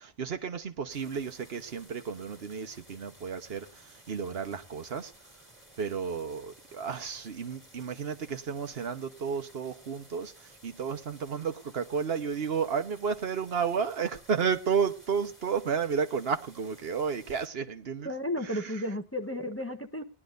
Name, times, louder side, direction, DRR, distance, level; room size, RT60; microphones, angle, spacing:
voice 1, 0.0-5.1 5.8-18.1 18.4-18.8, right 6 dB, 70° right, 1.2 m, -32 dB
sound 1, 0.9-17.5, right 1 dB, 10° right, 2.1 m, -56 dB
voice 2, 18.0-20.0, left 1 dB, 15° left, 0.8 m, -33 dB
19.5 x 11.0 x 2.5 m
omnidirectional pair, 1.1 m